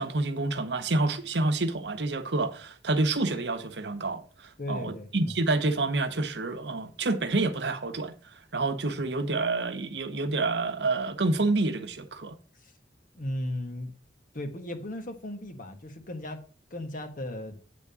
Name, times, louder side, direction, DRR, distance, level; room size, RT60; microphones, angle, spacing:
voice 1, 0.0-4.2 4.7-8.1 8.5-12.4, right 2 dB, 70° right, 0.9 m, -28 dB
voice 2, 4.6-5.3 12.6-12.7 13.1-13.9 14.3-16.4 16.7-17.6, left 1 dB, 50° left, 1.4 m, -36 dB
8.8 x 3.6 x 6.8 m
head